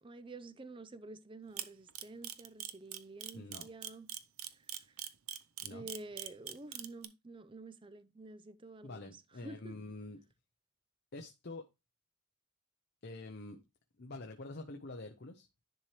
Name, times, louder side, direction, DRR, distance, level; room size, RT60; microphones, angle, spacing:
voice 1, 0.0-4.1 4.5-5.1 5.7-9.8, right 2 dB, 25° right, 0.5 m, -50 dB
Camera, 1.6-7.0, right 12 dB, 75° right, 0.7 m, -41 dB
voice 2, 3.3-3.7 5.6-5.9 8.8-10.2 11.1-11.6 13.0-13.6 14.0-15.5, left 2 dB, 50° left, 0.7 m, -46 dB
10.5 x 4.4 x 3.3 m
head